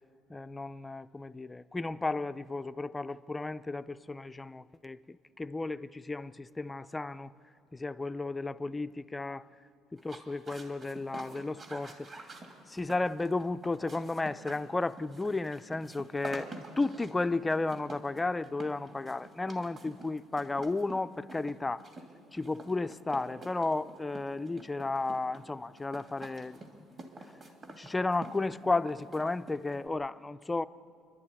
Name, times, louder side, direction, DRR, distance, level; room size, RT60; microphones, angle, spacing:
voice 1, 0.3-7.3 7.7-9.5 9.9-12.1 12.7-16.5 16.8-21.9 22.3-26.8 27.8-30.7, left 3 dB, 10° left, 0.4 m, -33 dB
sound 1, 10.0-29.9, right 2 dB, 35° right, 2.4 m, -48 dB
28.0 x 11.5 x 9.7 m
cardioid pair, 140°, 0 cm